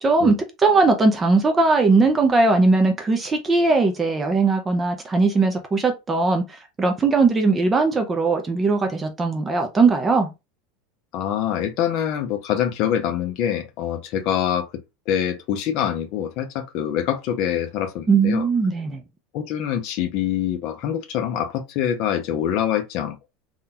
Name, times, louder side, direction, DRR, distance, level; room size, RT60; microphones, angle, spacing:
voice 1, 0.0-6.4 6.8-10.3 18.1-19.0, right 3 dB, 15° right, 0.4 m, -19 dB
voice 2, 11.1-14.7 15.1-18.5 19.3-23.3, left 9 dB, 40° left, 0.6 m, -25 dB
3.7 x 2.2 x 2.8 m
supercardioid pair, 175°, 0 cm